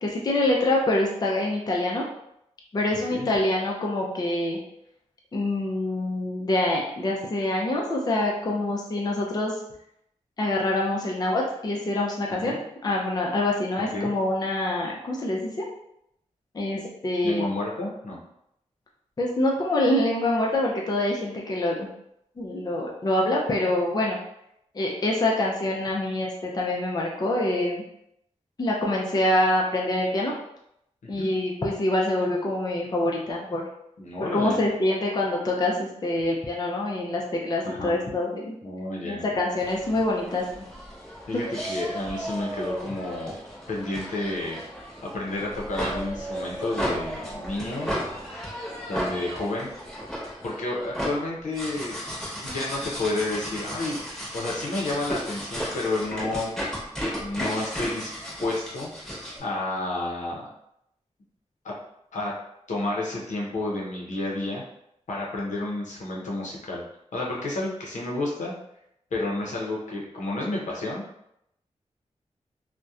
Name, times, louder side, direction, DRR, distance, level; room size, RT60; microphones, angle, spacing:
voice 1, 0.0-2.0 2.7-4.6 5.3-9.5 10.4-12.5 12.8-15.7 16.5-17.5 19.2-21.9 22.4-24.2 24.7-27.8 28.6-30.3 31.1-33.7 34.2-38.5 39.0-40.4, left 1 dB, 30° left, -2 dB, 0.4 m, -25 dB
voice 2, 13.8-14.1 17.2-18.2 31.0-31.3 34.0-34.6 37.6-38.0 38.6-39.2 41.3-43.4 43.7-44.6 45.0-47.9 48.9-49.7 50.4-52.1 52.4-54.0 54.3-56.6 57.0-58.1 58.4-60.5 61.6-61.7 62.1-62.3 62.7-64.6 65.1-66.8 67.1-68.5 69.1-71.0, left 2 dB, 80° left, -3 dB, 0.6 m, -30 dB
sound 1, 39.5-59.4, equal, 5° left, 1.1 m, -34 dB
2.7 x 2.1 x 2.3 m, 0.78 s
wide cardioid pair, 105°, 12 cm